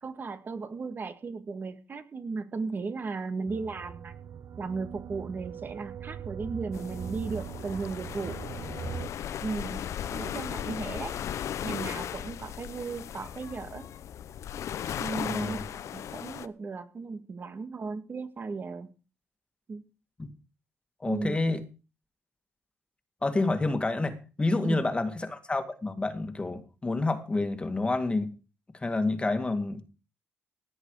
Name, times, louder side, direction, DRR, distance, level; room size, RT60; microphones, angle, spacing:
voice 1, 0.0-4.1 4.6-8.4 9.4-9.8 10.1-11.1 11.6-13.8 15.0-18.9 19.7-19.8 21.1-21.4 24.6-24.8, right 4 dB, 40° right, 2.1 m, -36 dB
sound 1, 3.5-9.1, right 8 dB, 60° right, 0.8 m, -40 dB
sound 2, 6.7-16.5, left 9 dB, 75° left, 0.9 m, -37 dB
voice 2, 15.2-15.6 20.2-20.3 21.0-21.6 23.2-28.3 28.8-29.8, left 2 dB, 20° left, 2.0 m, -28 dB
17.5 x 11.0 x 4.9 m
cardioid pair, 115°, 5 cm